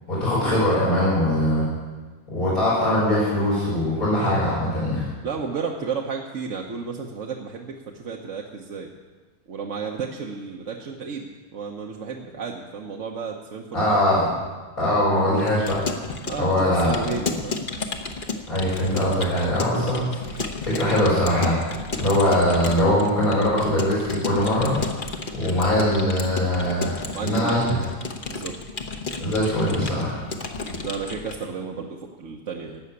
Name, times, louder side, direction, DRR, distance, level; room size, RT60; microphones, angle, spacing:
voice 1, 0.1-1.7 2.3-5.1 13.7-14.3 14.8-15.9 16.3-17.0 18.5-20.0 20.3-21.6 22.0-24.7 25.3-26.9 27.2-27.8 29.2-30.2, left 1 dB, 80° left, -10 dB, 5.6 m, -21 dB
voice 2, 5.2-8.9 9.5-14.0 16.3-17.6 27.1-27.6 28.3-28.5 30.8-32.8, right 5 dB, 60° right, 0 dB, 1.3 m, -32 dB
Keyboard (musical) / Computer keyboard, 15.4-31.5, left 3 dB, 40° left, 1.2 m, -33 dB
16.0 x 6.4 x 9.7 m, 1.3 s
omnidirectional pair, 1.5 m